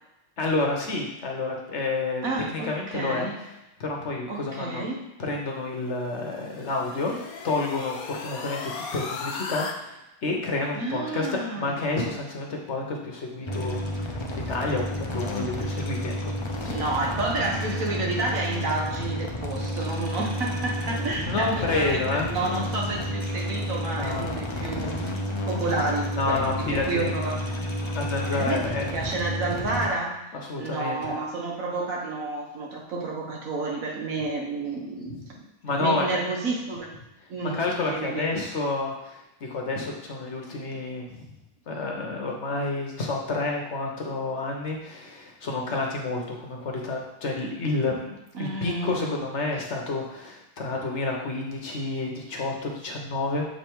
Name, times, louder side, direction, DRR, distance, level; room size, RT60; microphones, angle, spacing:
voice 1, 0.4-2.2 2.5-3.3 3.8-4.9 5.2-16.3 16.6-16.8 20.9-22.3 24.0-24.3 26.2-27.1 27.9-28.9 30.3-31.2 35.1-36.2 37.5-41.3 41.7-53.5, left 3 dB, 55° left, 0 dB, 1.2 m, -29 dB
voice 2, 2.2-3.4 4.3-5.0 10.7-12.0 16.7-25.0 25.4-27.4 27.8-27.9 28.2-30.2 30.6-35.2 35.8-36.9 37.3-38.4 48.3-49.2, right 3 dB, 70° right, -1 dB, 1.6 m, -30 dB
sound 1, 5.8-9.7, left 4 dB, 80° left, 1.2 m, -37 dB
sound 2, 13.5-29.9, left 1 dB, 30° left, 0.5 m, -31 dB
7.0 x 3.4 x 4.5 m, 0.92 s
omnidirectional pair, 1.5 m